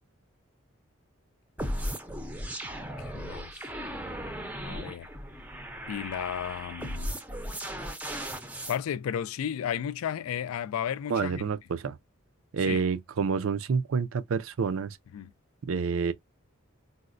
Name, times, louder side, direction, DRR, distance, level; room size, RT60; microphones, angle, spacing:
sound 1, 1.6-8.8, equal, 5° right, 0.5 m, -37 dB
voice 1, 2.6-3.7 4.6-5.1 5.9-7.2 8.7-11.5 12.6-12.8 15.1-15.3, left 9 dB, 85° left, 0.3 m, -34 dB
voice 2, 11.1-12.0 12.5-15.0 15.6-16.1, right 5 dB, 70° right, 0.4 m, -28 dB
4.0 x 2.1 x 2.4 m
head